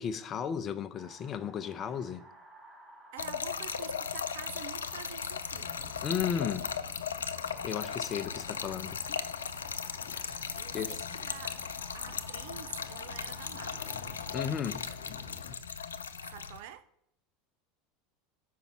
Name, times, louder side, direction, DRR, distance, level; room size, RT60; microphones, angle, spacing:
voice 1, 0.0-2.3 6.0-6.7 7.6-9.0 10.2-10.3 10.7-11.0 14.3-14.8, left 8 dB, 35° left, 0.6 m, -34 dB
sound 1, 0.9-14.6, right 1 dB, 15° right, 2.9 m, -55 dB
voice 2, 3.1-5.9 10.6-11.6 11.9-14.0 16.3-16.8, right 10 dB, 60° right, 0.6 m, -47 dB
Trickle dribble / Fill (with liquid), 3.2-16.6, left 6 dB, 80° left, 0.4 m, -37 dB
sound 2, 5.5-15.6, left 6 dB, 60° left, 0.9 m, -50 dB
5.7 x 5.2 x 6.0 m
figure-of-eight pair, 80°, 0 cm